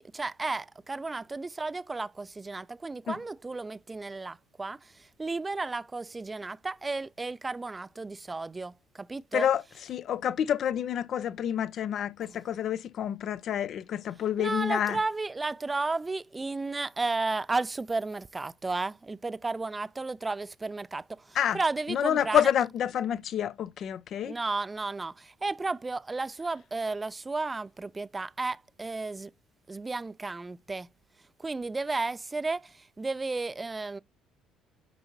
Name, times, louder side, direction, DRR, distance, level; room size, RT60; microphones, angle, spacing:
voice 1, 0.0-9.5 12.2-12.4 14.4-22.5 24.3-29.3 29.7-30.9 31.4-34.0, right 3 dB, 25° right, 0.4 m, -33 dB
voice 2, 9.9-15.0 21.3-21.6 21.9-24.4, left 9 dB, 55° left, 0.5 m, -28 dB
9.2 x 5.4 x 2.7 m
hypercardioid pair, 50°, 0 cm